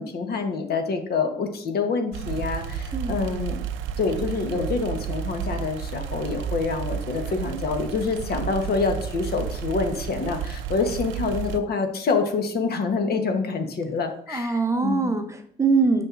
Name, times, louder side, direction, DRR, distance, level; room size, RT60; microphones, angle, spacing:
voice 1, 0.0-3.6 4.0-15.1, left 4 dB, 55° left, 6 dB, 1.0 m, -26 dB
sound 1, 2.1-11.6, right 8 dB, 80° right, 0.5 m, -32 dB
voice 2, 2.9-3.2 14.3-16.1, right 4 dB, 15° right, 6 dB, 0.7 m, -23 dB
6.4 x 6.0 x 2.5 m, 0.63 s
supercardioid pair, 80°, 19 cm